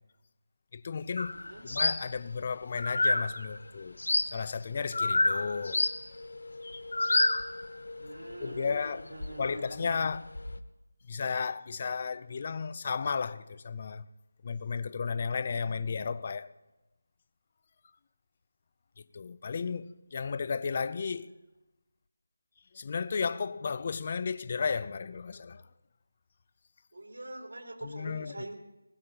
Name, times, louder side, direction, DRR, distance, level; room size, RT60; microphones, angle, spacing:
voice 1, 0.7-1.4 1.6-4.0 4.3-5.8 8.4-9.1 9.4-10.3 11.0-14.1 14.4-16.5 19.0-21.3 22.7-25.7 27.8-28.3, left 5 dB, 30° left, 0.5 m, -33 dB
sound 1, 1.2-2.4 2.8-3.6 4.0-4.4 4.9-9.5 9.9-10.6, left 2 dB, 75° left, 0.9 m, -30 dB
voice 2, 1.3-1.7 8.0-10.0 26.9-28.6, right 1 dB, 70° right, 3.6 m, -44 dB
22.0 x 20.0 x 2.9 m
figure-of-eight pair, 170°, 0 cm